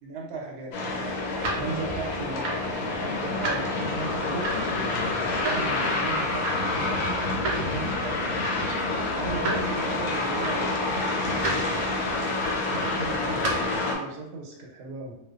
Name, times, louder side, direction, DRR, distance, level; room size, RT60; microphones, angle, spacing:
voice 1, 0.0-8.6 9.1-11.9 12.4-15.1, right 3 dB, 85° right, -1 dB, 1.1 m, -38 dB
sound 1, 0.7-14.0, left 2 dB, 80° left, 1.1 m, -28 dB
sound 2, 0.9-13.8, right 2 dB, 65° right, 0.9 m, -36 dB
2.5 x 2.2 x 2.3 m, 0.87 s
omnidirectional pair, 1.6 m